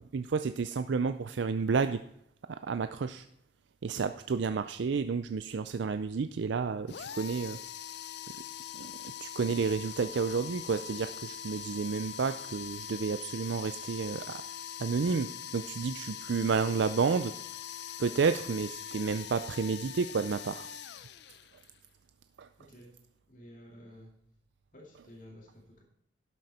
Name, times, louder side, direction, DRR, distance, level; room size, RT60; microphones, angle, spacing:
voice 1, 0.1-2.0 2.7-3.2 3.8-7.6 8.8-8.9 9.2-14.2 14.8-17.3 18.0-20.7 22.4-22.5, right 5 dB, 65° right, 10 dB, 0.4 m, -30 dB
sound 1, 6.9-21.8, left 9 dB, 60° left, 0.5 m, -42 dB
voice 2, 22.6-22.9 23.3-24.1 24.7-25.8, equal, 45° left, -1 dB, 2.5 m, -52 dB
12.0 x 7.7 x 4.2 m, 0.75 s
head